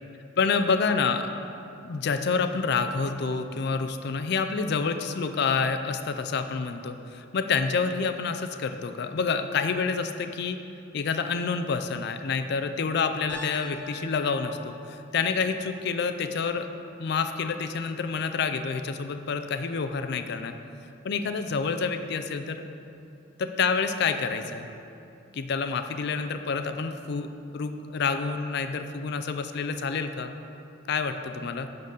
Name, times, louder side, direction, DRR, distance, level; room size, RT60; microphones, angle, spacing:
voice 1, 0.4-1.3 1.8-10.6 10.9-16.7 17.0-20.5 21.0-22.6 23.4-24.7 25.3-27.3 27.5-30.3 30.9-31.7, left 5 dB, 55° left, 8 dB, 0.4 m, -28 dB
Piano, 13.3-17.4, left 3 dB, 5° left, 2.0 m, -46 dB
10.5 x 4.0 x 6.5 m, 2.7 s
head